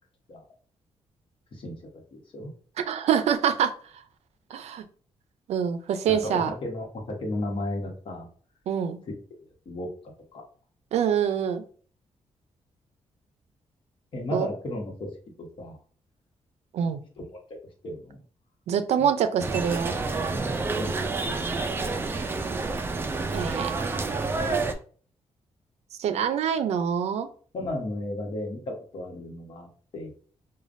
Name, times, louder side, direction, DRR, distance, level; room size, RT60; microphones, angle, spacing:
voice 1, 2.1-2.5 6.1-8.3 9.1-9.2 9.6-9.9 10.3-10.4 14.1-15.1 15.4-15.8 17.8-18.2 19.0-19.1 20.7-21.1 27.5-29.7 29.9-30.3, left 1 dB, 50° left, 1 dB, 1.1 m, -34 dB
voice 2, 2.8-3.7 4.5-4.8 5.5-6.5 8.7-9.0 10.9-11.6 14.3-14.5 16.7-17.0 18.7-19.9 23.3-23.7 24.5-24.6 26.0-27.3, right 8 dB, 90° right, 10 dB, 0.4 m, -25 dB
sound 1, 19.4-24.7, right 3 dB, 20° right, 0.3 m, -29 dB
4.9 x 2.2 x 2.5 m, 0.43 s
wide cardioid pair, 170°, 11 cm